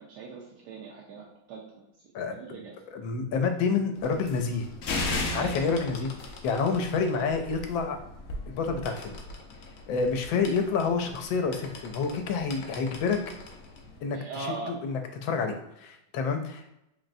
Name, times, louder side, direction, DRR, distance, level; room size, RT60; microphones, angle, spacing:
voice 1, 0.0-1.9 2.3-2.7 5.4-5.6 14.1-14.8, right 4 dB, 70° right, -3 dB, 1.1 m, -40 dB
voice 2, 2.1-2.6 2.9-4.7 5.3-6.1 6.4-8.0 8.6-9.2 9.9-13.2 14.0-16.7, left 5 dB, 85° left, 6 dB, 1.3 m, -28 dB
sound 1, 4.0-14.0, left 2 dB, 65° left, 0.8 m, -38 dB
4.0 x 3.1 x 2.6 m, 0.85 s
omnidirectional pair, 2.1 m